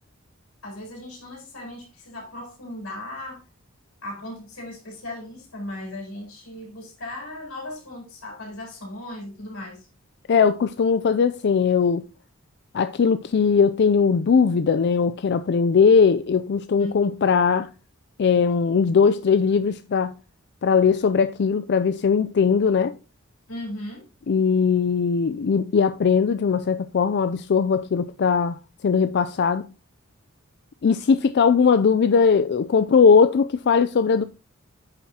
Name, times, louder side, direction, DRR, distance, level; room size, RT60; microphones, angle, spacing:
voice 1, 0.6-3.4 4.0-9.9 16.8-17.0 23.5-24.0, left 1 dB, 90° left, 4.2 m, -37 dB
voice 2, 10.3-12.1 12.7-17.7 18.2-20.2 20.6-23.0 24.3-29.7 30.8-34.2, left 5 dB, 55° left, 0.4 m, -19 dB
9.0 x 7.2 x 2.8 m
head